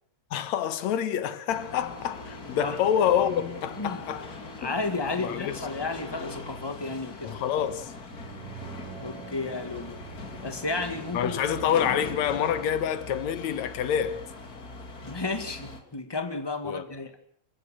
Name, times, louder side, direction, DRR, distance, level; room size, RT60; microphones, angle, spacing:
voice 1, 0.3-4.3 4.6-4.7 5.2-5.6 7.2-7.9 11.1-14.2 16.6-16.8, left 9 dB, 65° left, 2.4 m, -27 dB
sound 1, 1.5-15.8, left 3 dB, 30° left, 2.4 m, -41 dB
voice 2, 4.6-7.4 9.0-10.0 10.4-12.1 15.0-17.1, left 3 dB, 15° left, 1.1 m, -33 dB
sound 2, 7.8-12.5, right 7 dB, 45° right, 1.9 m, -46 dB
27.0 x 15.0 x 7.7 m
omnidirectional pair, 3.7 m